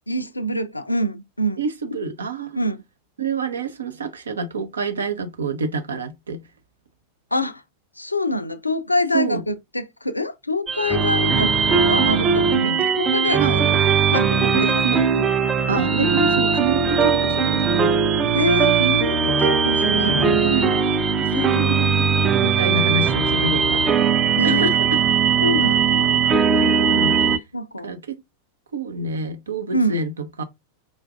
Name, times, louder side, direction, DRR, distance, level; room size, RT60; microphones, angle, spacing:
voice 1, 0.1-1.6 2.6-2.8 7.3-7.6 8.0-13.7 14.1-15.3 15.7-16.2 18.3-20.7 21.3-21.5 22.0-22.1 22.4-22.6 24.4-24.8 25.4-26.2 27.5-27.9 29.7-29.9, left 1 dB, 85° left, 0.4 m, -25 dB
voice 2, 1.6-2.6 3.2-6.4 9.1-9.4 11.3-11.5 12.6-12.8 13.4-13.6 14.4-15.0 15.7-17.9 20.4-20.8 21.2-21.8 22.2-23.9 24.4-25.0 26.5-27.4 27.8-28.2 28.7-30.4, right 4 dB, 70° right, 0.6 m, -27 dB
sound 1, 10.7-27.4, right 6 dB, 25° right, 0.5 m, -19 dB
4.9 x 2.4 x 2.5 m
figure-of-eight pair, 90°, 0 cm